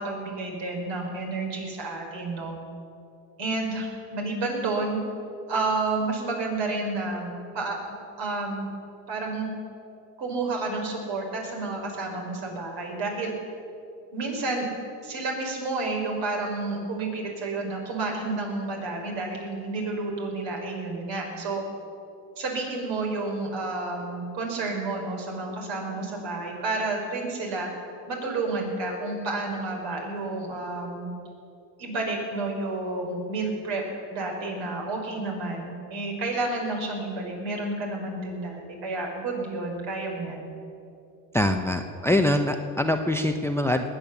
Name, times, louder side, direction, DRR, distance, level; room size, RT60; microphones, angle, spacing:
voice 1, 0.0-2.6 3.4-5.0 5.5-7.8 8.2-8.7 9.1-9.5 10.2-13.3 14.1-14.6 15.0-21.6 22.4-27.7 28.1-31.1 31.8-33.8 34.1-40.5, right 3 dB, 60° right, 0 dB, 4.9 m, -30 dB
voice 2, 41.3-43.9, left 1 dB, 5° left, 7 dB, 0.7 m, -24 dB
20.0 x 8.8 x 7.1 m, 2.6 s
supercardioid pair, 90°, 49 cm